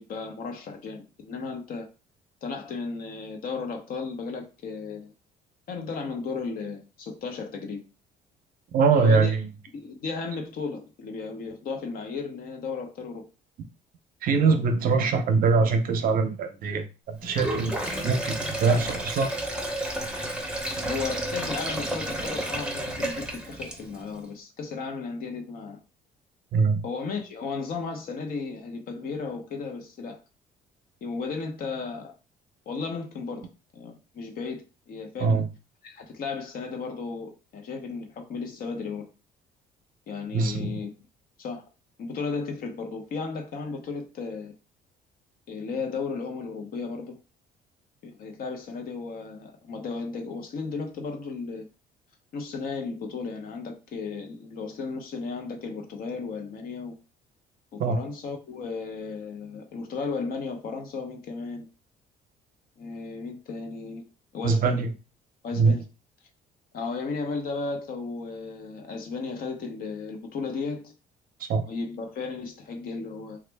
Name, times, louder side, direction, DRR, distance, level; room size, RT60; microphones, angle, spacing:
voice 1, 0.0-1.9 2.4-5.1 5.7-7.8 9.0-9.3 9.7-13.3 18.7-19.0 20.8-25.8 26.8-30.2 31.0-32.1 32.7-33.5 33.7-35.4 35.8-39.1 40.1-40.9 41.4-41.6 42.0-44.5 45.5-47.2 48.0-51.6 52.3-57.0 57.7-61.7 62.8-64.0 64.3-64.8 65.4-65.8 66.7-70.9 71.7-73.4, left 4 dB, 60° left, 0.9 m, -34 dB
voice 2, 8.7-9.5 14.2-17.8 18.0-19.3 26.5-26.8 35.2-35.5 40.3-40.8 57.8-58.0 64.4-64.9 65.5-65.8 71.4-71.6, right 4 dB, 60° right, 0.6 m, -23 dB
Sink (filling or washing), 17.2-24.1, right 1 dB, 5° right, 0.7 m, -31 dB
3.0 x 2.4 x 3.4 m
cardioid pair, 110°, 17 cm